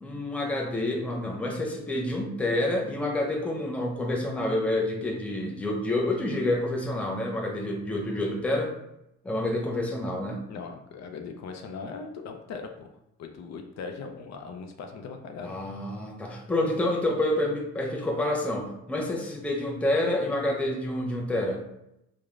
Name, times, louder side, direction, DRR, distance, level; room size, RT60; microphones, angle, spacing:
voice 1, 0.0-8.7 9.2-10.5 15.4-21.6, left 1 dB, 5° left, 0 dB, 0.4 m, -28 dB
voice 2, 10.5-12.9 13.2-15.5, left 5 dB, 65° left, 4 dB, 0.4 m, -39 dB
2.9 x 2.1 x 2.4 m, 0.82 s
cardioid pair, 90°, 30 cm